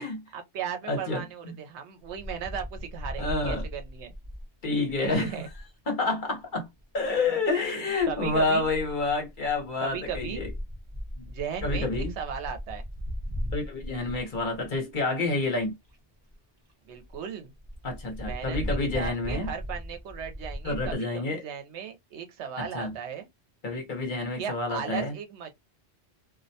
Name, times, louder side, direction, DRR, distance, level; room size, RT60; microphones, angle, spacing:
voice 1, 0.3-4.1 5.0-5.5 8.1-8.6 9.8-10.4 11.3-12.8 16.9-17.5 18.2-18.6 18.9-23.3 24.4-25.5, right 7 dB, 85° right, 0.9 m, -36 dB
voice 2, 0.9-1.5 3.2-3.6 4.6-5.3 5.9-6.7 6.9-10.5 11.6-12.1 13.5-15.7 17.8-19.5 20.6-21.4 22.6-22.9 23.6-25.1, left 3 dB, 50° left, 0.8 m, -28 dB
Wind, 2.1-5.7 6.8-7.3 8.0-14.9 15.6-15.7 15.9-16.0 16.3-16.4 16.7-16.8 17.0-17.2 17.6-20.9, equal, 35° right, 0.5 m, -37 dB
2.3 x 2.1 x 2.6 m
omnidirectional pair, 1.1 m